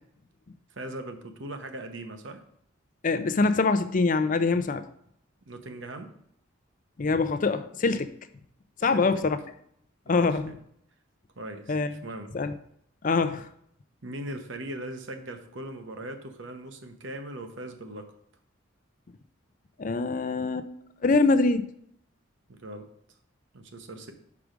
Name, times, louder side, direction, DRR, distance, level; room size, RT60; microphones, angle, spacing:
voice 1, 0.7-2.4 5.5-6.1 8.8-9.2 10.1-10.6 11.4-12.3 14.0-18.1 22.5-22.9 23.5-24.1, right 1 dB, 65° right, 6 dB, 0.9 m, -40 dB
voice 2, 3.0-4.8 7.0-8.1 8.8-9.4 10.1-10.5 11.7-11.9 12.3-12.5 13.0-13.5 19.8-20.7 21.0-21.6, left 3 dB, 40° left, 11 dB, 0.4 m, -24 dB
6.0 x 4.8 x 5.1 m, 0.68 s
head